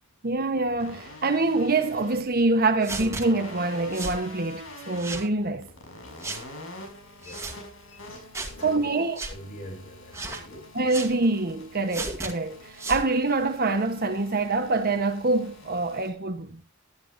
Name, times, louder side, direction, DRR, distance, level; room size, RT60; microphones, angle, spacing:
voice 1, 0.2-5.7 8.6-9.2 10.7-16.6, right 3 dB, 45° right, 1.2 m, -25 dB
sound 1, 0.8-16.1, left 1 dB, 70° left, 6.1 m, -46 dB
sound 2, 2.8-3.2 3.9-4.2 4.9-5.3 6.2-6.4 7.2-7.6 8.3-8.6 9.1-9.3 10.1-10.4 10.9-11.1 11.9-12.3 12.8-13.1, right 3 dB, 15° right, 2.0 m, -34 dB
voice 2, 8.4-11.2, equal, 50° left, 3.4 m, -44 dB
18.0 x 12.0 x 2.7 m
head